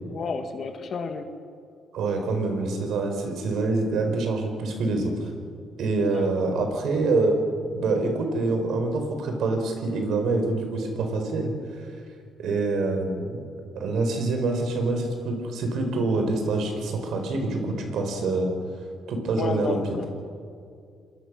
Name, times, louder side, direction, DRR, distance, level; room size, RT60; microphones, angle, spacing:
voice 1, 0.1-1.3 6.0-6.2 19.4-20.0, left 5 dB, 55° left, 7 dB, 1.8 m, -31 dB
voice 2, 1.9-5.3 5.8-7.3 7.7-11.9 12.4-13.4 13.7-18.5 19.1-19.8, right 3 dB, 75° right, 4 dB, 4.6 m, -26 dB
27.0 x 20.5 x 6.4 m, 2.3 s
cardioid pair, 90°, 0 cm